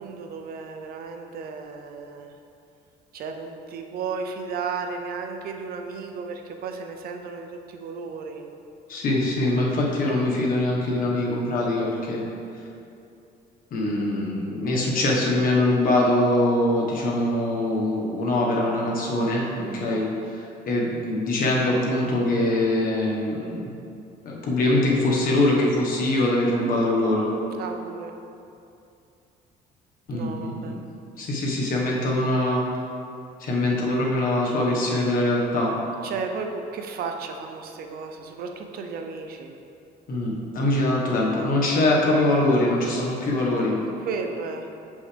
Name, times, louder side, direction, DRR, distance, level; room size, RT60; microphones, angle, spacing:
voice 1, 0.0-2.3 3.1-8.5 19.6-20.0 27.6-28.1 30.1-30.8 36.0-39.5 44.0-44.7, right 5 dB, 60° right, 4 dB, 0.6 m, -34 dB
voice 2, 8.9-12.2 13.7-23.7 24.2-27.3 30.1-30.8 31.2-32.6 33.4-35.7 40.1-43.8, left 1 dB, 55° left, -3 dB, 1.4 m, -23 dB
7.1 x 5.3 x 3.4 m, 2.6 s
cardioid pair, 110°, 17 cm